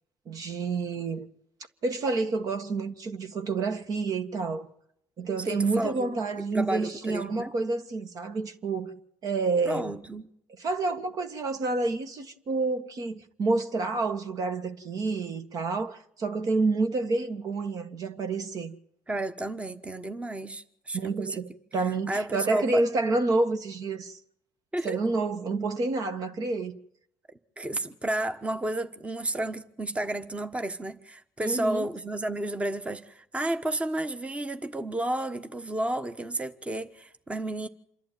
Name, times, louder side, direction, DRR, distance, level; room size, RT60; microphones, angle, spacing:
voice 1, 0.2-1.3 1.8-4.7 5.2-9.9 10.6-18.7 20.9-24.2 24.8-26.7 31.4-31.9, right 3 dB, 55° right, 1.7 m, -29 dB
voice 2, 5.5-6.2 6.5-7.5 9.6-10.3 19.1-21.4 22.1-22.8 24.7-25.0 27.6-37.7, right 1 dB, 15° right, 1.2 m, -32 dB
27.0 x 11.5 x 9.3 m
hypercardioid pair, 65°, 7 cm